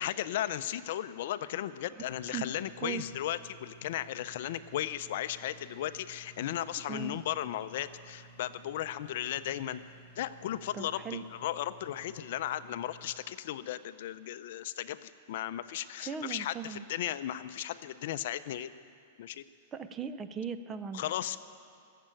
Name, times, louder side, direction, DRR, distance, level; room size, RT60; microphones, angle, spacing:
voice 1, 0.0-9.8 10.2-18.7 19.2-19.4 20.9-21.4, left 12 dB, 60° left, 13 dB, 0.5 m, -36 dB
sound 1, 2.0-13.2, right 3 dB, 85° right, 4.8 m, -56 dB
voice 2, 10.7-11.2 16.0-16.8 19.7-21.0, right 6 dB, 20° right, 11 dB, 0.6 m, -38 dB
18.5 x 7.5 x 9.0 m, 2.3 s
supercardioid pair, 150°, 0 cm